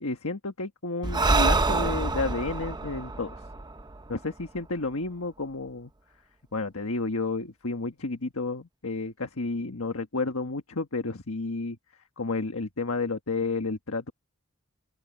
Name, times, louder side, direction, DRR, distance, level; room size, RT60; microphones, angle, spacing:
voice 1, 0.0-3.3 4.1-5.9 6.5-11.8 12.2-14.1, left 3 dB, 70° left, 1.5 m, -31 dB
Breathing, 1.0-4.6, right 3 dB, 20° right, 0.7 m, -26 dB
open air
head